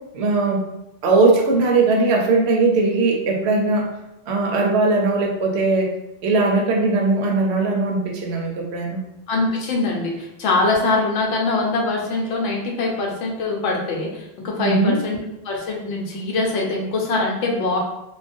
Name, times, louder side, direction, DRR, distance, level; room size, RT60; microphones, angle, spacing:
voice 1, 0.1-0.6 1.0-3.9 4.3-5.9 6.2-9.0 14.6-15.0, right 3 dB, 70° right, 0 dB, 0.8 m, -19 dB
voice 2, 9.3-15.2 15.4-17.8, left 3 dB, 85° left, -1 dB, 0.9 m, -23 dB
2.3 x 2.1 x 2.5 m, 0.88 s
omnidirectional pair, 1.2 m